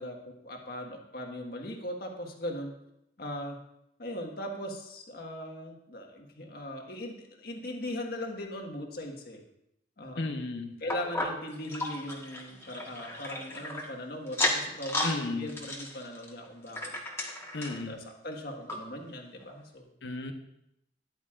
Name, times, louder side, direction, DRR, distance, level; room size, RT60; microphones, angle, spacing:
voice 1, 0.0-2.7 3.2-3.6 4.0-9.4 10.0-10.4 10.8-16.9 17.6-19.8, left 1 dB, 60° left, 2 dB, 1.6 m, -39 dB
voice 2, 10.2-10.7 15.0-15.5 17.5-18.0 20.0-20.3, left 2 dB, 80° left, 6 dB, 1.0 m, -33 dB
sound 1, 10.9-13.9 14.3-15.2 15.5-17.8 18.3-18.4 18.7-18.8 19.4-19.5, left 2 dB, 15° left, 1.5 m, -34 dB
13.0 x 10.5 x 2.5 m, 0.79 s
head